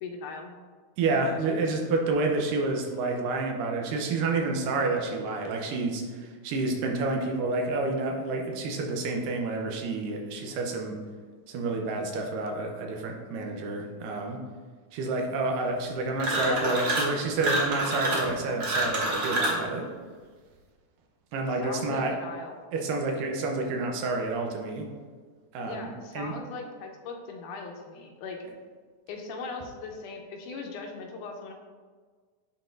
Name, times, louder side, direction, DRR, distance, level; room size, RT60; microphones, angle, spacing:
voice 1, 0.0-0.5 16.3-16.8 21.6-22.6 25.6-28.4 29.1-31.5, left 4 dB, 80° left, 2 dB, 2.0 m, -39 dB
voice 2, 1.0-11.0 11.5-14.4 14.9-19.9 21.3-22.1 22.7-24.9 25.5-26.3, right 3 dB, 85° right, 2 dB, 2.4 m, -29 dB
sound 1, 16.2-17.1 17.4-19.6, right 2 dB, 55° right, 1.6 m, -27 dB
10.0 x 4.0 x 2.6 m, 1.5 s
omnidirectional pair, 3.8 m